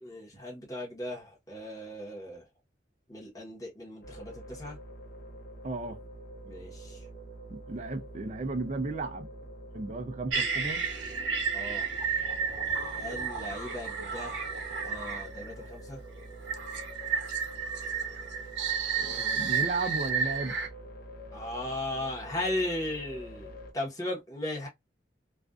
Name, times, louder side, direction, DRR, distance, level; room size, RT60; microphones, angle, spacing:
voice 1, 0.0-2.4 3.1-4.8 6.4-7.0 11.5-11.9 12.9-14.5 14.8-16.0 21.3-24.7, left 1 dB, 20° left, 0.9 m, -37 dB
sound 1, 4.0-23.7, right 1 dB, 50° left, 0.6 m, -46 dB
voice 2, 5.6-6.0 7.5-9.3 9.7-10.9 19.0-20.5, right 3 dB, 35° right, 0.4 m, -34 dB
sound 2, 10.3-15.5 16.5-20.7, right 6 dB, 70° right, 0.7 m, -32 dB
2.4 x 2.3 x 2.2 m
head